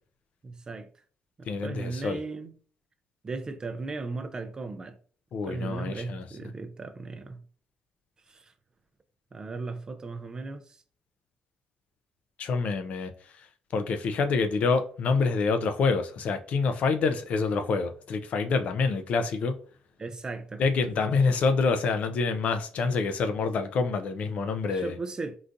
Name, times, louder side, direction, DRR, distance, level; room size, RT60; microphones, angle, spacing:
voice 1, 0.4-0.9 1.4-2.6 3.2-5.0 5.4-7.4 8.3-8.5 9.3-10.8 20.0-20.6 24.7-25.4, right 3 dB, 30° right, 0.4 m, -36 dB
voice 2, 1.5-2.2 5.3-6.3 12.4-19.6 20.6-25.0, left 4 dB, 60° left, 0.4 m, -27 dB
3.8 x 2.4 x 2.5 m
cardioid pair, 105°, 3 cm